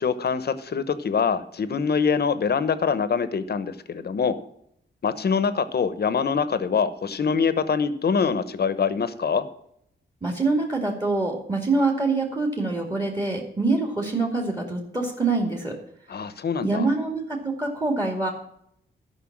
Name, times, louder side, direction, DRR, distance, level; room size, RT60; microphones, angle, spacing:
voice 1, 0.0-4.4 5.0-9.5 16.1-16.9, left 6 dB, 55° left, 13 dB, 0.9 m, -24 dB
voice 2, 10.2-15.7 16.6-18.3, right 3 dB, 20° right, 0 dB, 2.2 m, -25 dB
12.5 x 5.7 x 7.3 m, 0.71 s
wide cardioid pair, 120°, 19 cm